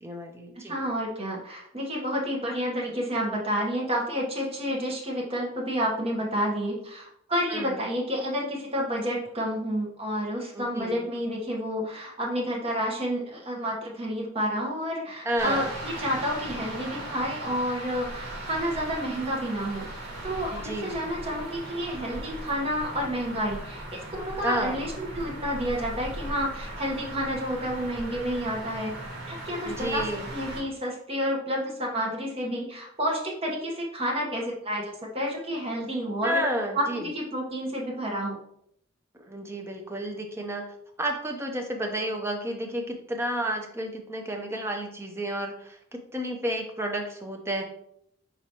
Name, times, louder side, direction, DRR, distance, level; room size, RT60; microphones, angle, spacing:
voice 1, 0.0-0.7 7.5-7.9 10.5-11.1 15.2-15.7 20.5-21.1 24.4-24.8 29.6-30.3 36.2-37.1 39.2-47.6, right 1 dB, 10° right, 2 dB, 0.5 m, -31 dB
voice 2, 0.6-19.9 20.2-28.9 29.3-30.0 30.3-34.8 35.1-36.4 36.7-38.4, equal, 30° right, -2 dB, 1.0 m, -30 dB
sound 1, 15.4-30.6, right 1 dB, 55° right, 1.6 m, -38 dB
4.7 x 3.9 x 2.9 m, 0.73 s
head